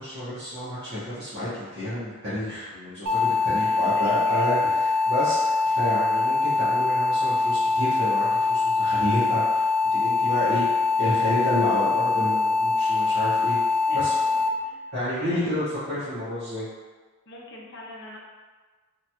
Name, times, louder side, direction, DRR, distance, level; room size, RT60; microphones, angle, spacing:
voice 1, 0.0-4.6 5.1-10.6 11.0-13.6 13.9-14.1 14.9-16.7, left 1 dB, 55° right, -14 dB, 0.9 m, -29 dB
sound 1, 3.1-14.5, left 3 dB, 75° right, 0.3 m, -23 dB
voice 2, 3.5-4.5 5.8-6.0 10.4-10.7 13.9-14.8 15.3-15.6 17.3-18.2, left 2 dB, 55° left, -3 dB, 0.6 m, -43 dB
2.9 x 2.3 x 2.8 m, 1.4 s
head